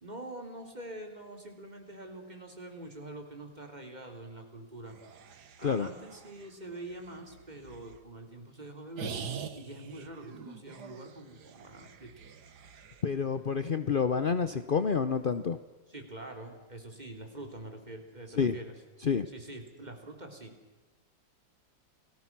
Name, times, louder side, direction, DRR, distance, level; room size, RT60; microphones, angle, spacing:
voice 1, 0.0-4.9 5.6-9.3 9.6-12.1 15.9-18.7 19.3-20.5, right 1 dB, 20° right, 4 dB, 3.5 m, -45 dB
sound 1, 4.9-8.0 9.0-13.0, right 6 dB, 60° right, 1.8 m, -45 dB
voice 2, 13.0-15.6 18.4-18.6 19.0-19.3, left 6 dB, 60° left, 11 dB, 0.5 m, -28 dB
30.0 x 19.5 x 6.1 m, 1.2 s
omnidirectional pair, 2.1 m